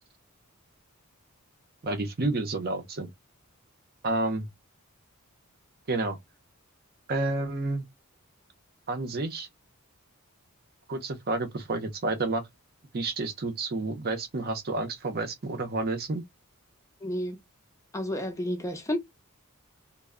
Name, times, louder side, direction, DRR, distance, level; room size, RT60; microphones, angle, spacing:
voice 1, 1.8-3.1 4.0-4.5 5.9-6.2 7.1-7.8 8.9-9.5 10.9-12.4 12.9-16.2, right 2 dB, 45° right, 0.6 m, -30 dB
voice 2, 17.0-17.4 17.9-19.0, left 1 dB, 15° left, 0.5 m, -31 dB
2.1 x 2.0 x 3.5 m
head